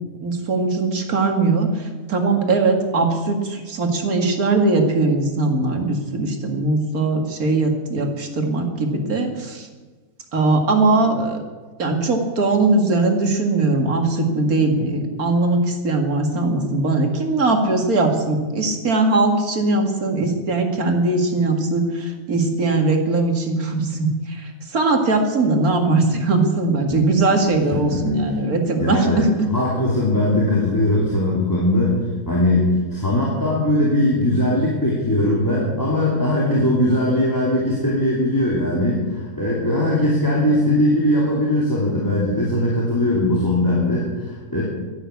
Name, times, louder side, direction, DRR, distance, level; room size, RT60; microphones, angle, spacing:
voice 1, 0.2-9.7 10.3-11.4 11.8-29.5 40.5-40.6, right 3 dB, 85° right, 3 dB, 2.4 m, -20 dB
voice 2, 27.7-28.1 28.8-32.0 32.3-44.6, left 1 dB, 15° left, -5 dB, 2.9 m, -20 dB
13.0 x 11.0 x 8.3 m, 1.3 s
omnidirectional pair, 1.5 m